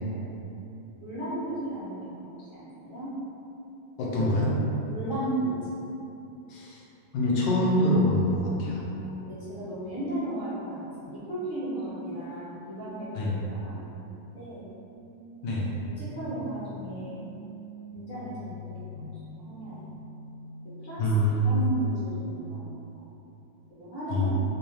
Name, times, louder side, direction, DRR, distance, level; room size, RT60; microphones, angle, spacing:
voice 1, 1.0-3.1 4.9-5.5 9.0-14.0 14.3-14.6 16.0-17.3 17.9-18.9 19.2-19.9 20.8-21.0 21.3-23.0 23.8-24.3, right 1 dB, 35° left, -12 dB, 0.8 m, -35 dB
voice 2, 4.0-4.5 6.5-6.8 7.1-8.8 13.1-13.4 15.4-15.7 21.0-21.7 24.1-24.3, left 1 dB, 75° left, -5 dB, 1.3 m, -25 dB
sound 1, 14.9-20.9, left 3 dB, 45° right, 0.9 m, -44 dB
3.6 x 2.7 x 3.1 m, 2.9 s
omnidirectional pair, 2.1 m